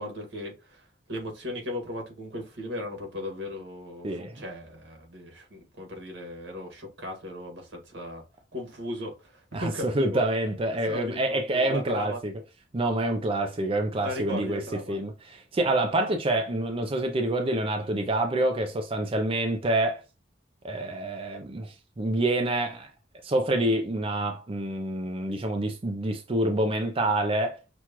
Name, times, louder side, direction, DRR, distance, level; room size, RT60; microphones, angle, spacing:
voice 1, 0.0-8.2 8.5-10.2 10.9-12.2 14.0-15.0, left 1 dB, 85° right, 1.8 m, -37 dB
voice 2, 4.0-4.4 9.5-12.3 12.7-14.6 14.9-20.0 20.6-22.9 23.2-27.6, right 1 dB, 30° right, 0.5 m, -27 dB
6.0 x 2.4 x 2.9 m
head